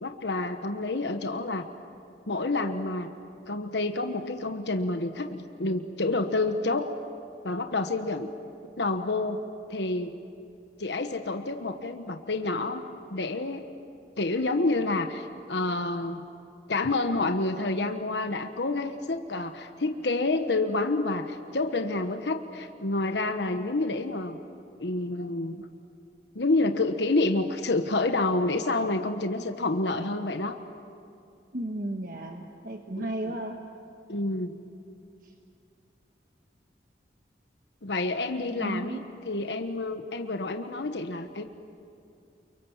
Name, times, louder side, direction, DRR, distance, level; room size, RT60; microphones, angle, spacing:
voice 1, 0.0-1.7 2.3-3.1 3.5-6.9 7.4-8.3 8.8-9.4 9.7-10.1 10.8-12.8 13.1-13.7 14.2-16.2 16.7-24.4 24.8-25.7 26.3-30.6 33.0-33.4 34.1-34.6 37.8-39.0 39.2-41.4, left 2 dB, 80° left, 7 dB, 1.2 m, -28 dB
voice 2, 31.5-33.6 38.5-39.0, right 1 dB, 50° right, 3 dB, 1.3 m, -34 dB
29.5 x 23.5 x 7.2 m, 2.6 s
head